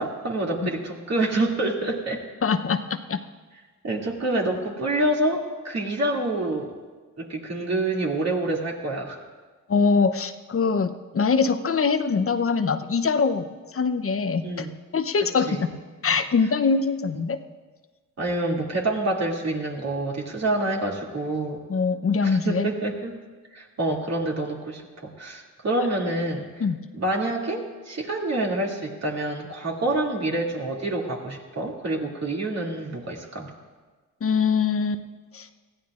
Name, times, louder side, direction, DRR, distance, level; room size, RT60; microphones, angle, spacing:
voice 1, 0.0-2.2 3.8-6.7 7.2-9.2 14.4-14.7 15.5-15.7 17.1-17.2 18.2-21.6 22.2-23.2 23.5-26.5 26.9-33.5, right 2 dB, 45° right, -1 dB, 2.6 m, -27 dB
voice 2, 2.4-3.2 9.7-13.5 13.7-14.7 14.9-15.7 16.0-17.4 21.7-22.7 26.6-26.8 34.2-35.0 35.3-35.5, left 5 dB, 40° left, 9 dB, 0.8 m, -23 dB
20.0 x 14.5 x 2.5 m, 1.4 s
cardioid pair, 65°, 35 cm